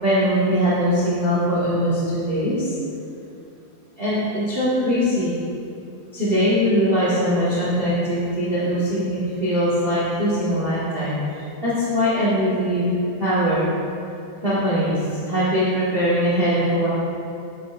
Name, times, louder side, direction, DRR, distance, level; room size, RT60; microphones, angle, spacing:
voice 1, 0.0-2.7 4.0-5.3 6.1-12.8 13.2-13.7 14.4-16.9, equal, 80° right, -10 dB, 0.5 m, -21 dB
8.2 x 7.7 x 2.5 m, 2.6 s
omnidirectional pair, 4.1 m